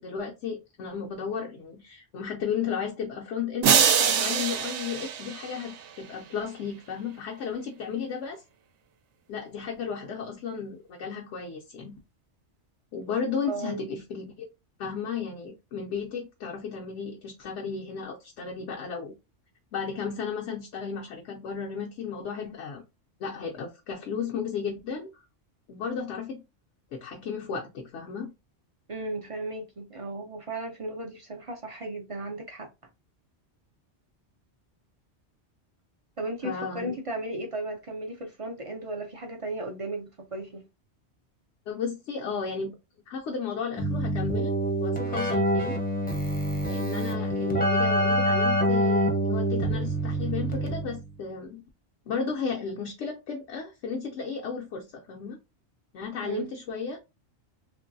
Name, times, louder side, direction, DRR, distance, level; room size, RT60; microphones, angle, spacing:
voice 1, 0.0-8.4 9.3-12.0 12.9-14.5 14.8-19.1 19.7-22.8 23.2-25.2 25.7-26.4 26.9-28.3 36.4-37.0 41.7-42.7 43.1-44.5 44.8-45.8 46.7-51.6 52.1-55.4 55.9-57.0, left 6 dB, 80° left, 0.9 m, -34 dB
sound 1, 3.6-6.0, right 8 dB, 80° right, 0.9 m, -24 dB
voice 2, 13.5-13.9 28.9-32.7 36.2-40.6 56.2-56.5, right 2 dB, 50° right, 0.4 m, -35 dB
Keyboard (musical), 43.8-51.1, equal, 10° left, 0.5 m, -26 dB
2.9 x 2.5 x 2.5 m
omnidirectional pair, 1.2 m